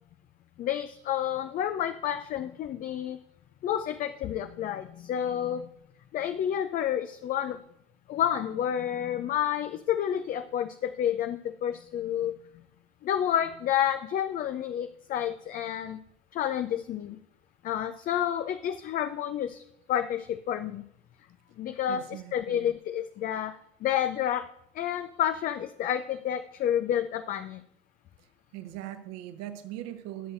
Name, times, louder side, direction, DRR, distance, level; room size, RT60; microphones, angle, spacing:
voice 1, 0.6-3.2 3.6-5.7 6.1-7.6 8.1-12.4 13.0-16.0 16.3-17.2 17.6-19.6 19.9-20.8 21.6-24.5 24.7-27.6, left 10 dB, 25° left, 10 dB, 0.5 m, -30 dB
voice 2, 21.9-22.7 28.5-30.3, right 13 dB, 50° right, 9 dB, 1.3 m, -40 dB
20.0 x 7.8 x 2.6 m, 0.74 s
figure-of-eight pair, 75°, 33 cm